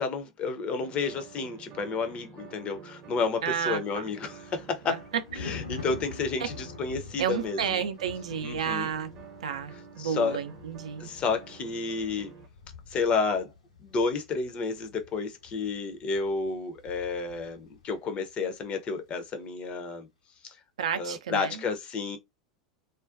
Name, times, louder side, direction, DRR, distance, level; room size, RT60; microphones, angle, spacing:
voice 1, 0.0-5.0 5.4-7.8 8.4-8.9 10.0-10.4 11.0-12.3 12.9-13.5 13.8-20.1 20.4-20.6 20.9-22.2, left 4 dB, 35° left, 0.5 m, -31 dB
sound 1, 0.8-12.5, right 6 dB, 40° right, 0.7 m, -49 dB
voice 2, 3.4-4.0 4.9-5.0 7.2-9.1 9.4-11.1 20.8-21.6, right 8 dB, 70° right, 0.4 m, -31 dB
Thunder, 3.5-18.1 18.4-18.7, left 4 dB, 80° left, 0.9 m, -46 dB
2.4 x 2.2 x 2.4 m
figure-of-eight pair, 85°, 4 cm